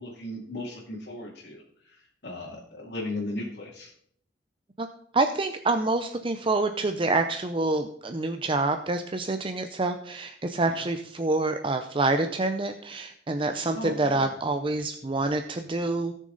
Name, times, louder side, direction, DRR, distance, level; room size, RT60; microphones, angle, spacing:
voice 1, 0.0-1.6 2.2-3.9 13.7-14.3, left 1 dB, 65° left, -5 dB, 2.4 m, -36 dB
voice 2, 5.1-16.2, right 2 dB, 30° right, 7 dB, 0.6 m, -27 dB
17.5 x 6.4 x 4.0 m, 0.67 s
head